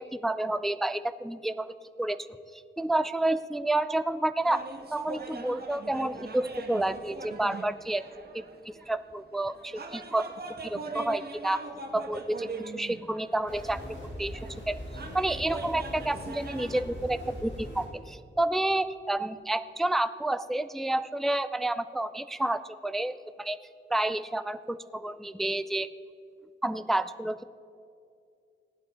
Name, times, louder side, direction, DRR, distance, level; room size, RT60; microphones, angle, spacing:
voice 1, 0.0-2.3 2.5-4.6 4.9-8.0 8.3-10.3 10.6-11.6 11.9-14.8 15.1-23.6 23.9-25.9 26.6-27.4, right 1 dB, ahead, 13 dB, 0.3 m, -30 dB
sound 1, 4.4-16.8, right 3 dB, 55° right, 1.2 m, -42 dB
sound 2, 13.5-17.9, equal, 75° left, 4.2 m, -41 dB
16.0 x 11.5 x 4.9 m, 2.4 s
wide cardioid pair, 130°, 20 cm